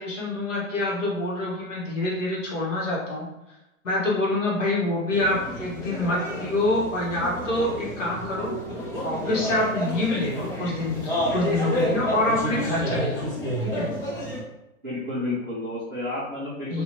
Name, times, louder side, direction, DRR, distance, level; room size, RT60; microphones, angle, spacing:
voice 1, 0.0-3.3 3.8-8.6 9.0-13.3 13.6-13.9 16.7-16.8, left 2 dB, 60° left, -4 dB, 1.2 m, -26 dB
sound 1, 5.1-14.4, equal, 40° left, 0.9 m, -30 dB
voice 2, 14.8-16.8, left 2 dB, 15° right, -15 dB, 0.6 m, -31 dB
2.7 x 2.4 x 2.9 m, 0.93 s
hypercardioid pair, 175°, 42 cm